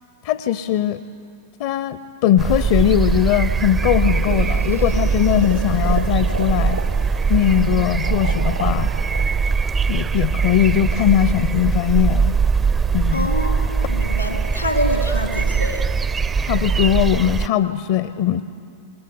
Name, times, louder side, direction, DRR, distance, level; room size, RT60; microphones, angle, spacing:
voice 1, 0.2-1.0 1.6-6.8 7.3-8.9 9.9-12.3 12.9-13.3 16.4-18.4, left 11 dB, 50° left, 13 dB, 0.7 m, -20 dB
sound 1, 2.4-17.5, right 5 dB, 20° right, 0.5 m, -21 dB
sound 2, 3.8-10.7, right 3 dB, 85° right, 2.0 m, -33 dB
voice 2, 13.1-15.8, equal, 90° left, 2 dB, 3.8 m, -26 dB
27.0 x 20.0 x 9.7 m, 2.4 s
figure-of-eight pair, 90°, 0 cm